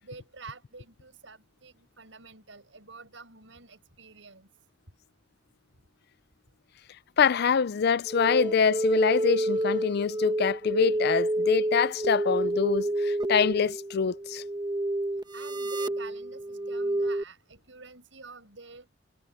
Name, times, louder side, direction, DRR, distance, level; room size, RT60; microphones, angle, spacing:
voice 1, 0.0-4.5 15.3-18.9, right 4 dB, 75° right, 7.0 m, -48 dB
voice 2, 7.2-14.4, left 6 dB, 60° left, 0.5 m, -25 dB
sound 1, 8.1-17.2, right 1 dB, 25° right, 1.2 m, -29 dB
sound 2, 8.2-10.0, equal, 5° left, 5.4 m, -53 dB
head